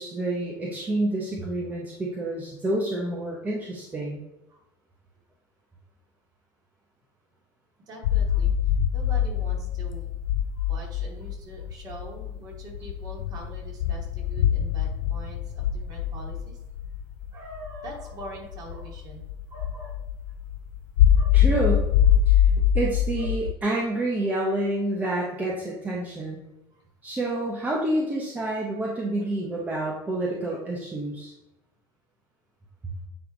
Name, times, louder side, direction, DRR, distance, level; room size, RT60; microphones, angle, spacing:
voice 1, 0.0-4.2 21.3-21.8 22.3-22.4 22.7-26.4 27.0-31.3, right 1 dB, 15° right, -3 dB, 1.1 m, -28 dB
voice 2, 7.9-8.6 8.9-10.1 10.5-16.6 17.3-20.0 21.1-21.7 23.2-23.4 26.7-26.8 28.9-29.0 30.5-30.6, right 1 dB, 40° right, -2 dB, 2.6 m, -43 dB
sound 1, 8.0-23.5, left 9 dB, 85° left, 0.5 m, -24 dB
9.3 x 3.4 x 4.0 m, 0.91 s
supercardioid pair, 120°, 10 cm